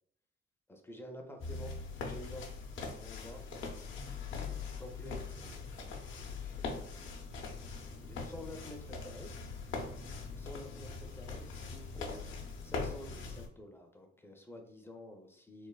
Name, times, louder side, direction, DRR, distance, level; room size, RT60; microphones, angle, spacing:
voice 1, 0.7-1.7 2.0-2.5 2.8-3.4 4.1-5.9 6.4-6.8 8.0-9.3 10.4-12.2 12.6-15.7, left 1 dB, 10° left, 3 dB, 0.4 m, -50 dB
sound 1, 1.4-13.5, left 4 dB, 75° left, 0.6 m, -42 dB
3.2 x 2.0 x 2.2 m, 0.64 s
cardioid pair, 90°, 20 cm